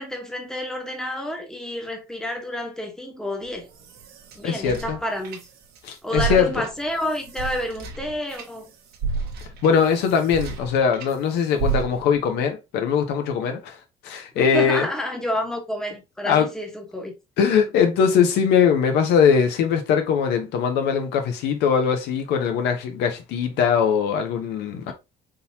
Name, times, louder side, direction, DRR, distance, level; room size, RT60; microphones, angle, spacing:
voice 1, 0.0-3.7 4.3-5.4 6.0-8.7 14.3-17.1, left 1 dB, 5° left, 1.0 m, -29 dB
sound 1, 3.5-5.8 6.1-11.2 11.6-12.3, right 6 dB, 70° right, 0.9 m, -31 dB
voice 2, 4.4-5.0 5.8-6.5 9.6-13.8 14.0-14.9 16.2-16.5 17.4-24.9, left 7 dB, 85° left, 0.8 m, -21 dB
3.8 x 2.9 x 2.6 m
cardioid pair, 110°, 17 cm